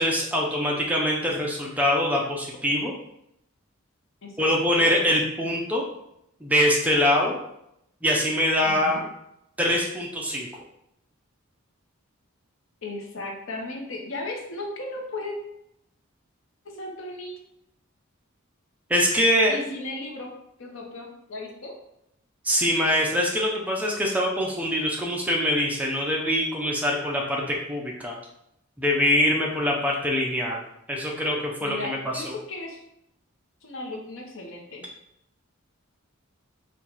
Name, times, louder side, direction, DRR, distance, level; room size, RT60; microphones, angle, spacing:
voice 1, 0.0-2.9 4.4-5.8 6.4-7.4 8.0-9.1 9.6-10.5 18.9-19.5 22.4-28.1 28.8-30.6 30.9-32.3, left 1 dB, 5° right, -2 dB, 0.6 m, -24 dB
voice 2, 4.2-4.5 4.8-5.0 8.6-9.0 12.8-15.4 16.6-17.3 19.5-20.3 20.6-21.7 31.6-32.8 33.6-34.9, left 2 dB, 65° left, 0 dB, 0.8 m, -36 dB
4.4 x 2.4 x 4.0 m, 0.79 s
head